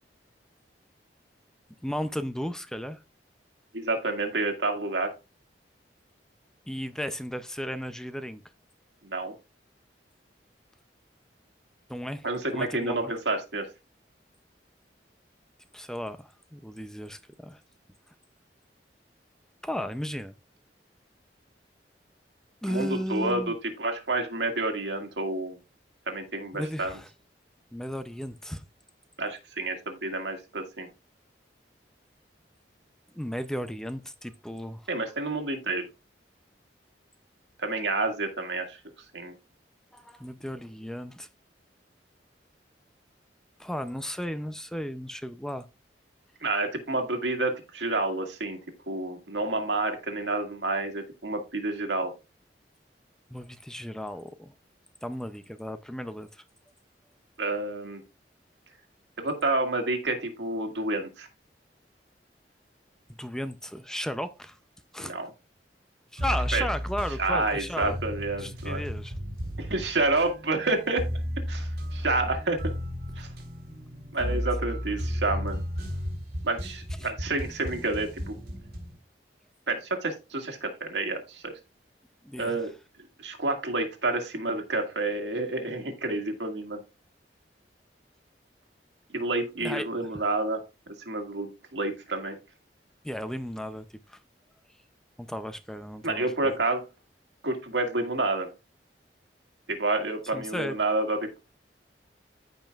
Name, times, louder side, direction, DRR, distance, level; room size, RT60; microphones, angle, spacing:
voice 1, 1.8-3.0 6.7-8.4 11.9-12.3 12.5-13.1 15.7-17.6 19.6-20.3 22.6-23.5 26.5-27.1 27.7-28.6 33.1-34.9 39.9-41.3 43.6-45.7 53.3-54.5 55.0-56.4 63.2-64.6 64.9-65.1 66.1-68.0 68.4-69.1 74.2-74.4 77.0-77.1 82.2-82.6 89.6-89.9 90.1-90.2 93.0-94.2 95.2-96.5 100.3-100.8, equal, 5° left, 0.4 m, -35 dB
voice 2, 3.7-5.1 9.0-9.3 12.2-13.7 22.7-25.6 26.1-26.9 29.2-30.9 34.9-35.8 37.6-38.8 39.1-39.3 46.4-48.6 48.9-52.1 57.4-58.0 59.2-61.3 65.0-65.3 66.5-66.6 67.2-68.8 69.6-71.0 71.5-72.6 73.2-73.3 74.1-75.6 76.4-78.3 79.7-81.5 82.4-82.7 83.2-86.8 89.1-90.6 90.9-92.4 96.0-96.8 97.4-98.5 99.7-101.4, right 2 dB, 80° right, 1.9 m, -29 dB
sound 1, 66.2-79.0, equal, 60° right, 3.2 m, -34 dB
14.5 x 5.2 x 2.3 m
head